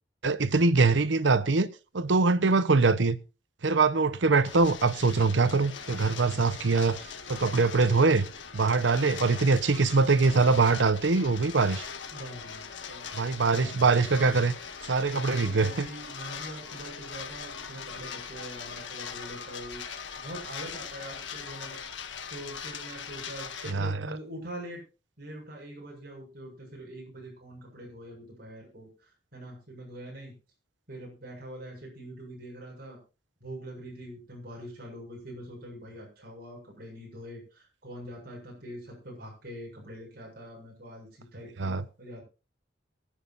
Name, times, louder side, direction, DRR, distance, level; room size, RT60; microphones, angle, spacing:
voice 1, 0.2-1.7 1.9-3.2 3.6-7.0 7.3-8.3 8.5-11.9 13.1-14.5 14.9-15.9 23.7-23.9 41.6-41.8, right 4 dB, 80° right, 0.8 m, -23 dB
sound 1, 4.4-23.7, left 6 dB, 90° left, 1.6 m, -41 dB
voice 2, 12.1-13.7 15.1-21.8 22.3-24.8 25.2-30.3 30.9-33.0 33.4-42.2, right 1 dB, 55° right, 7.5 m, -43 dB
23.0 x 10.0 x 2.5 m
head